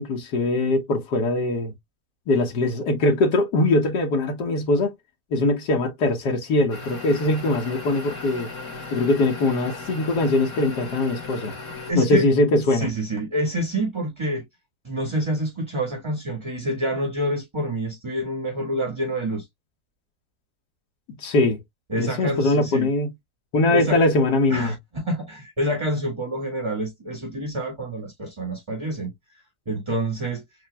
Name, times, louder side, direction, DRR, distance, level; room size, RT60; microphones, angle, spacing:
voice 1, 0.0-1.7 2.3-4.9 5.3-8.5 8.9-11.5 12.0-12.9 21.2-21.6 22.0-23.1 23.5-24.7, left 2 dB, 85° left, 1.8 m, -21 dB
sound 1, 6.7-11.9, left 3 dB, 50° left, 2.4 m, -36 dB
voice 2, 11.9-12.2 12.7-14.4 14.8-19.5 21.9-22.9 23.7-24.0 24.5-29.1 29.6-30.4, right 1 dB, 15° right, 1.5 m, -27 dB
7.3 x 3.0 x 2.2 m
omnidirectional pair, 1.8 m